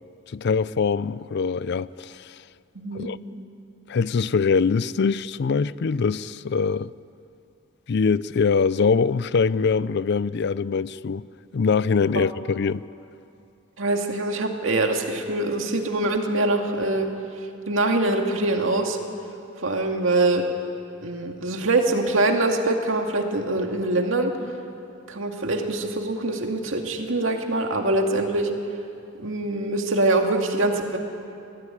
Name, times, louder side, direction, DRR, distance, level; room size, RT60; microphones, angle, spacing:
voice 1, 0.3-2.4 2.9-3.2 3.9-6.9 7.9-11.3 11.5-12.8, left 5 dB, 55° left, 0.4 m, -23 dB
voice 2, 2.8-3.1 12.1-12.2 13.8-17.1 17.7-19.0 19.6-20.5 21.0-24.3 25.1-28.5 29.2-31.0, right 2 dB, 75° right, 2.2 m, -24 dB
21.5 x 15.5 x 10.0 m
head